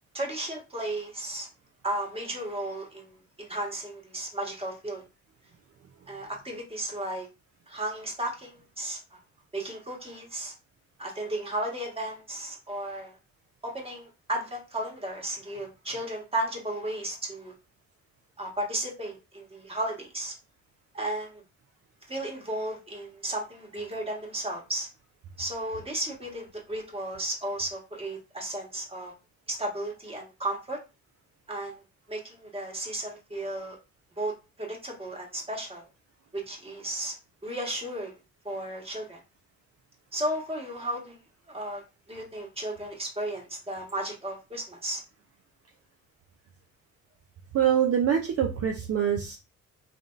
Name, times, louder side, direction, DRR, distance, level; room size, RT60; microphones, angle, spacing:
voice 1, 0.1-1.5 1.8-5.0 6.1-7.3 7.7-9.2 9.5-10.5 11.0-13.2 13.6-17.5 18.4-20.3 20.9-21.4 22.1-24.9 25.4-29.1 29.5-30.8 31.5-31.8 32.1-33.8 34.2-35.8 36.3-37.2 37.4-38.2 38.4-39.2 40.1-41.2 41.5-41.8 42.1-45.0, right 1 dB, 20° right, -1 dB, 1.4 m, -34 dB
voice 2, 47.5-49.4, right 9 dB, 50° right, 3 dB, 0.5 m, -24 dB
3.4 x 2.7 x 2.5 m, 0.29 s
cardioid pair, 90°, 30 cm